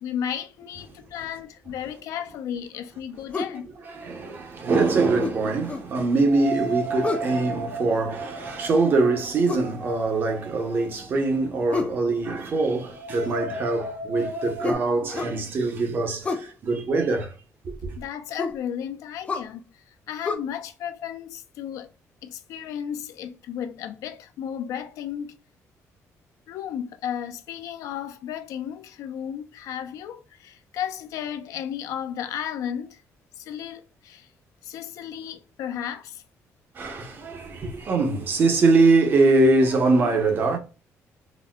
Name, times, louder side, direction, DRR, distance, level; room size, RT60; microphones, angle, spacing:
voice 1, 0.0-3.7 18.0-21.9 22.2-25.4 26.5-33.0 33.4-34.3 34.6-36.2, left 9 dB, 85° left, 0.4 m, -34 dB
sound 1, 3.3-3.6 5.2-5.9 7.0-7.3 9.4-9.7 11.7-12.0 14.6-15.4 16.2-16.5 18.4-18.6 19.3-19.5 20.2-20.4, left 3 dB, 25° left, 0.4 m, -29 dB
voice 2, 3.9-17.3 17.6-17.9 36.7-40.6, right 3 dB, 40° right, 0.7 m, -23 dB
sound 2, 5.1-5.2 6.1-11.1 11.4-11.5 12.8-14.8, right 2 dB, 65° right, 1.0 m, -34 dB
3.9 x 2.1 x 2.2 m
cardioid pair, 170°, 6 cm